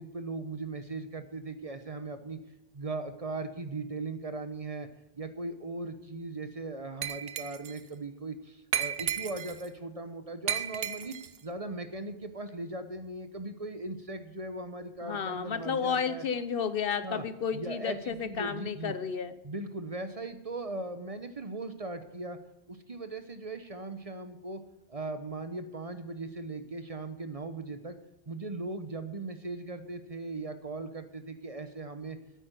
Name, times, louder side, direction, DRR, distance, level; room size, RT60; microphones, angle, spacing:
voice 1, 0.0-2.4 2.7-4.9 5.2-11.1 11.4-16.2 17.0-17.2 17.5-18.9 19.4-22.4 22.7-24.6 24.9-28.0 28.3-32.2, right 2 dB, 35° right, 9 dB, 1.0 m, -38 dB
Glass, 7.0-7.8 8.7-9.7 10.5-11.4, right 9 dB, 70° right, 0.9 m, -33 dB
voice 2, 15.0-19.4, left 6 dB, 65° left, 13 dB, 1.0 m, -32 dB
9.3 x 8.6 x 9.2 m, 0.90 s
omnidirectional pair, 1.0 m